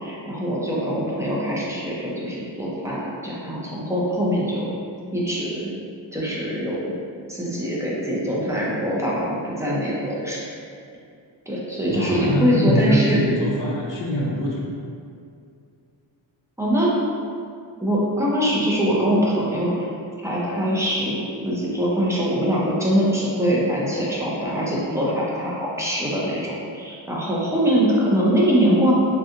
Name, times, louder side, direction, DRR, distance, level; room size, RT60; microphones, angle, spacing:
voice 1, 0.0-4.7 5.1-5.7 6.1-6.9 7.3-10.4 11.5-13.2 16.6-16.9 17.8-19.9 20.2-28.9, equal, 5° right, -6 dB, 0.4 m, -23 dB
voice 2, 11.9-14.7, left 1 dB, 45° left, -3 dB, 0.6 m, -23 dB
3.3 x 2.5 x 2.7 m, 2.4 s
wide cardioid pair, 160°, 45 cm